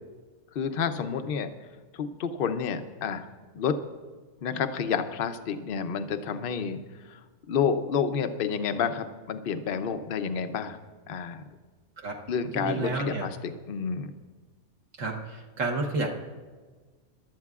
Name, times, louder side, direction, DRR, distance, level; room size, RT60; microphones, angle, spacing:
voice 1, 0.5-1.5 1.9-3.2 3.5-3.8 4.4-6.8 7.1-7.2 7.5-10.8 11.1-11.4 12.3-14.1, left 6 dB, 50° left, 9 dB, 0.7 m, -29 dB
voice 2, 12.5-13.3 15.0-16.1, right 3 dB, 60° right, 1 dB, 1.5 m, -30 dB
22.5 x 12.0 x 2.4 m, 1.4 s
omnidirectional pair, 1.6 m